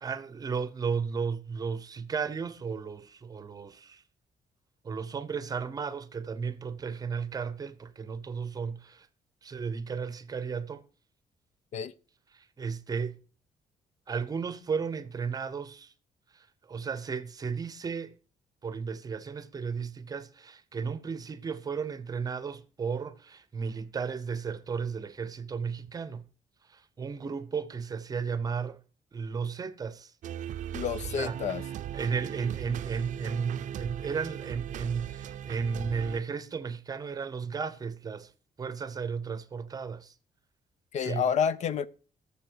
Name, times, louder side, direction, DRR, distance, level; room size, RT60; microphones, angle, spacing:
voice 1, 0.0-4.0 4.8-9.1 9.4-10.8 12.3-13.2 14.1-15.9 16.3-18.1 18.6-26.2 26.7-28.8 29.1-30.1 31.0-31.4 31.9-38.3 38.6-40.1 41.0-41.3, right 5 dB, 25° right, 0.7 m, -34 dB
sound 1, 30.2-36.2, right 10 dB, 65° right, 0.5 m, -38 dB
voice 2, 30.7-31.6 40.9-41.9, left 7 dB, 60° left, 0.6 m, -29 dB
17.5 x 7.0 x 4.5 m
wide cardioid pair, 175°, 14 cm